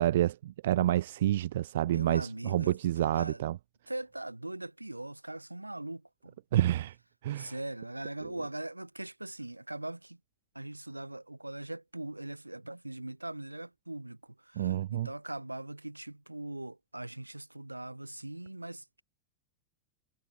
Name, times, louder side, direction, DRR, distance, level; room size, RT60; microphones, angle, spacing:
voice 1, 0.0-3.6 6.5-6.9 7.2-7.5 14.5-15.1, right 13 dB, 60° right, 1.7 m, -28 dB
voice 2, 1.8-3.4 3.9-6.4 7.3-10.2 10.5-19.0, right 1 dB, 85° right, 4.7 m, -41 dB
figure-of-eight pair, 90°, 0 cm